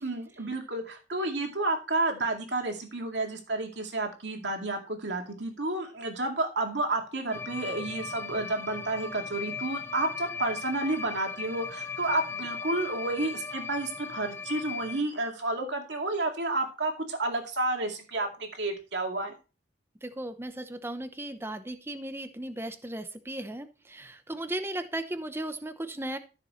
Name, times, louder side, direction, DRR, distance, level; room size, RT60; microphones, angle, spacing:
voice 1, 0.0-19.3, right 2 dB, 80° right, 3 dB, 2.3 m, -31 dB
sound 1, 7.3-15.0, left 5 dB, 15° left, 0.5 m, -38 dB
voice 2, 20.0-26.2, right 1 dB, 15° right, 9 dB, 0.8 m, -36 dB
13.5 x 6.7 x 3.2 m, 0.33 s
head